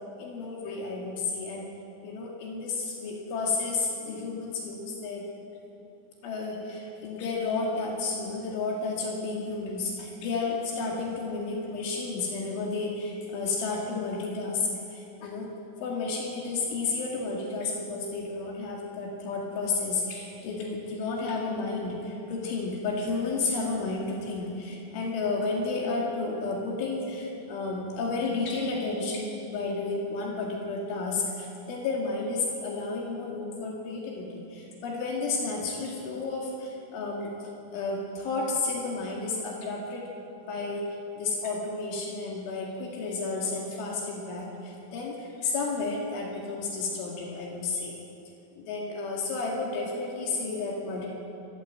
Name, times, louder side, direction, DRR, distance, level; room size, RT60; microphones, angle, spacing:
voice 1, 0.2-1.7 2.0-5.2 6.2-15.5 15.8-40.0 40.4-40.9 41.2-48.0 48.6-51.1, left 3 dB, 75° left, -1 dB, 4.5 m, -32 dB
25.0 x 13.5 x 7.6 m, 2.8 s
omnidirectional pair, 5.6 m